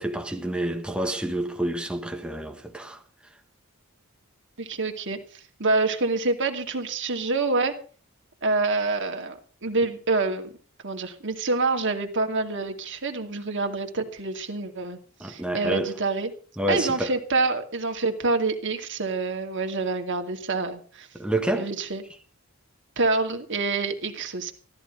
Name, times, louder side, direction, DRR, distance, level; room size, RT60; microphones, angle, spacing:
voice 1, 0.0-3.0 15.2-16.0 16.6-17.2 21.1-21.7, right 1 dB, 5° right, 1.7 m, -28 dB
voice 2, 4.6-5.2 5.6-7.7 8.4-10.5 10.8-16.3 16.7-21.1 21.6-22.0 23.0-24.5, right 3 dB, 60° right, 2.4 m, -27 dB
14.0 x 14.0 x 5.3 m
head